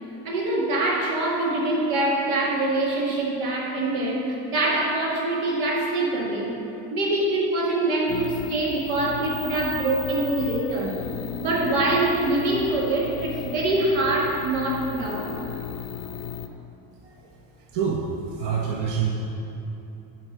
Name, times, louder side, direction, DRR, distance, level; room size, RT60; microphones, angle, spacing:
voice 1, 0.2-6.6 6.9-10.9 11.4-15.3, right 2 dB, 85° right, -3 dB, 2.0 m, -24 dB
sound 1, 8.1-16.5, left 8 dB, 70° left, 0.7 m, -35 dB
voice 2, 17.7-19.1, right 6 dB, 60° right, -2 dB, 1.0 m, -27 dB
10.5 x 4.5 x 4.8 m, 2.9 s
supercardioid pair, 95°, 48 cm